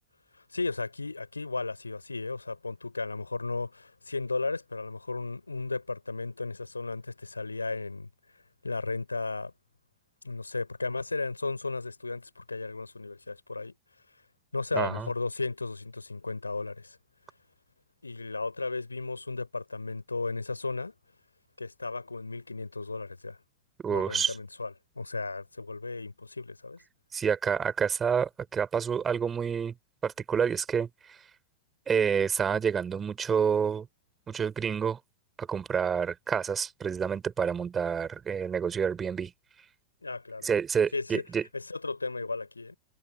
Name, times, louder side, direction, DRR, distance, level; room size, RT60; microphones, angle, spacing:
voice 1, 0.4-8.1 8.6-9.5 10.2-13.7 14.5-17.0 18.0-20.9 21.6-23.4 23.9-26.8 40.0-40.5 40.9-41.2 41.5-42.8, left 3 dB, 80° left, 4.2 m, -35 dB
voice 2, 14.7-15.1 23.8-24.4 27.1-29.7 30.0-31.2 31.9-33.9 34.3-35.0 35.4-39.3 40.4-41.4, right 7 dB, 20° right, 5.1 m, -28 dB
figure-of-eight pair, 90°, 0 cm